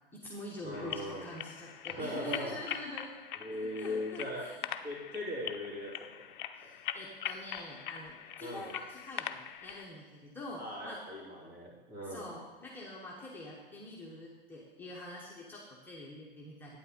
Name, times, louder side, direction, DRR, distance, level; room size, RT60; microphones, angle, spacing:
voice 1, 0.1-3.1 3.6-4.6 6.5-11.0 12.1-16.8, left 2 dB, 5° left, -5 dB, 1.1 m, -45 dB
voice 2, 0.6-1.3 1.9-2.6 3.4-4.5 4.8-6.3 6.6-6.7 8.4-8.7 10.6-12.3, left 1 dB, 35° right, -4 dB, 3.1 m, -39 dB
sound 1, 0.7-9.9, left 10 dB, 55° left, 0.5 m, -42 dB
9.0 x 8.1 x 3.7 m, 1.2 s
hypercardioid pair, 115°, 30 cm